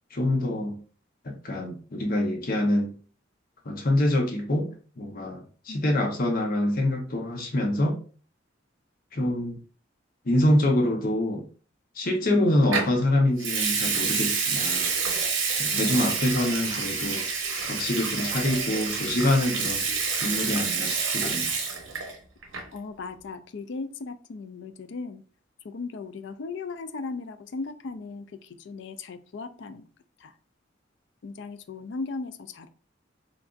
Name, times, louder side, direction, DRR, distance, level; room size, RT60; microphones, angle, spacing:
voice 1, 0.1-0.8 1.2-2.9 3.6-8.0 9.1-9.6 10.2-11.4 12.0-14.9 15.6-17.3 17.6-19.8 20.2-21.5, left 1 dB, 50° left, 1 dB, 0.9 m, -25 dB
Water tap faucet / Sink (filling or washing) / Liquid, 12.7-12.9 13.4-22.2 22.4-22.8, right 5 dB, 80° right, 0.9 m, -28 dB
voice 2, 15.7-16.1 22.7-25.2 25.6-29.9 30.2-30.3 31.2-32.7, left 4 dB, 70° left, 10 dB, 0.4 m, -37 dB
3.8 x 3.4 x 2.4 m, 0.41 s
head